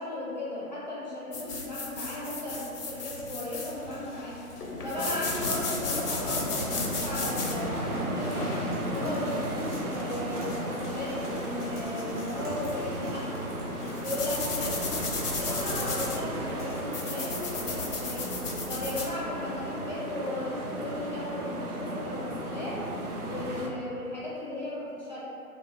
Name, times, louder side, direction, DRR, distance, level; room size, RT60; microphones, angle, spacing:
voice 1, 0.0-4.4 4.8-8.6 8.9-13.3 14.0-18.3 18.7-22.8 23.2-25.2, left 1 dB, 35° left, -8 dB, 0.4 m, -36 dB
sound 1, 1.3-19.1, left 3 dB, 90° left, 0.6 m, -36 dB
sound 2, 2.8-17.5, right 1 dB, 25° right, 0.4 m, -49 dB
sound 3, 4.9-23.7, right 1 dB, 85° right, 0.5 m, -35 dB
3.1 x 2.0 x 2.3 m, 2.5 s
figure-of-eight pair, 135°, 44 cm